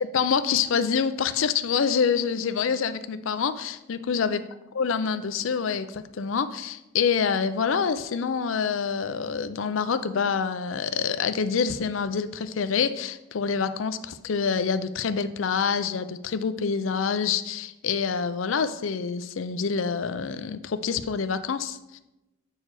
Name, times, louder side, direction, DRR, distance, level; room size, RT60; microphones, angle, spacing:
voice 1, 0.0-4.4 4.7-22.0, left 6 dB, 80° left, 12 dB, 0.5 m, -26 dB
7.5 x 4.6 x 4.7 m, 0.95 s
head